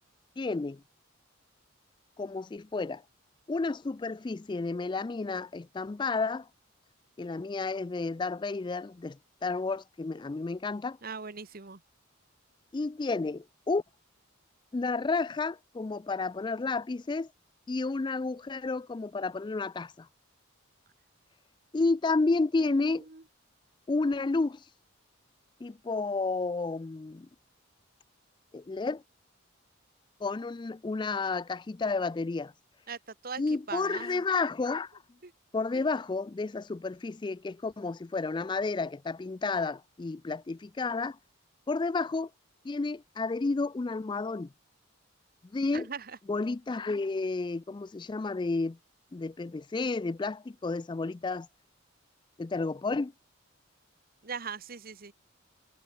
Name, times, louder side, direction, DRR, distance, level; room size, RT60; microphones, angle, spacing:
voice 1, 0.4-0.8 2.2-3.0 3.5-6.5 7.2-11.0 12.7-13.8 14.7-17.3 17.7-20.1 21.7-23.1 23.9-24.6 25.6-27.3 28.5-29.0 30.2-32.5 33.4-34.9 35.5-41.2 41.7-42.3 42.6-44.5 45.5-45.9 46.3-48.8 49.1-51.5 52.4-53.1, left 3 dB, 20° left, 0.3 m, -31 dB
voice 2, 11.0-11.8 22.6-23.2 32.9-33.0 33.2-33.4 33.7-34.2 35.2-35.3 35.7-35.9 45.7-46.1 54.2-55.1, right 5 dB, 45° right, 1.3 m, -40 dB
head